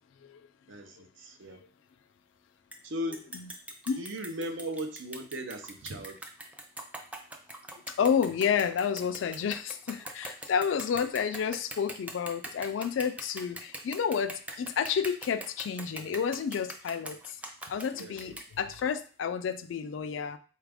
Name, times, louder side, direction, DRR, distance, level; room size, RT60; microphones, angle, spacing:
voice 1, 0.7-1.6 2.8-3.3 4.0-6.2 17.9-18.4, equal, 85° right, 6 dB, 0.6 m, -37 dB
sound 1, 2.7-2.8 3.1-19.0, right 1 dB, 5° right, 0.3 m, -42 dB
voice 2, 8.0-17.4 17.7-20.4, left 7 dB, 80° left, 11 dB, 0.3 m, -30 dB
4.1 x 2.4 x 3.4 m, 0.39 s
head